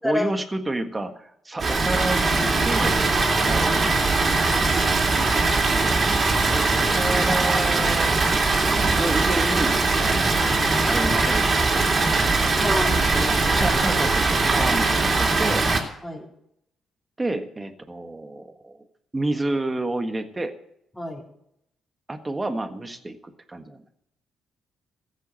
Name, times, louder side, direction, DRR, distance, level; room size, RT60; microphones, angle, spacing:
voice 1, 0.0-3.0 3.5-4.4 6.5-8.2 9.0-11.7 11.9-12.4 13.5-15.7 17.2-18.8 19.1-20.5 22.1-23.8, right 2 dB, 20° right, 7 dB, 1.6 m, -30 dB
Water, 1.6-15.8, right 3 dB, 40° right, 3.2 m, -21 dB
voice 2, 12.4-13.8 16.0-16.3 20.9-21.2, left 1 dB, 10° left, 0 dB, 3.8 m, -29 dB
15.0 x 8.3 x 7.6 m, 0.74 s
cardioid pair, 90°, 0 cm